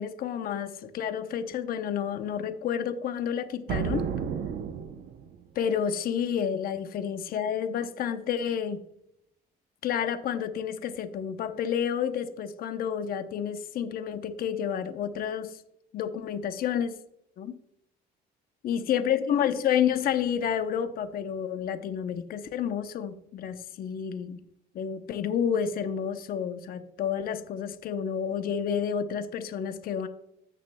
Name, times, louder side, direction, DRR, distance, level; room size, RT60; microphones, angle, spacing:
voice 1, 0.0-4.1 5.6-8.8 9.8-15.6 15.9-17.0 17.4-17.6 18.6-24.4 24.7-30.1, left 8 dB, 60° left, 9 dB, 0.8 m, -30 dB
sound 1, 3.7-5.4, right 7 dB, 70° right, 0.8 m, -32 dB
14.5 x 6.5 x 2.3 m, 0.78 s
cardioid pair, 110°, 17 cm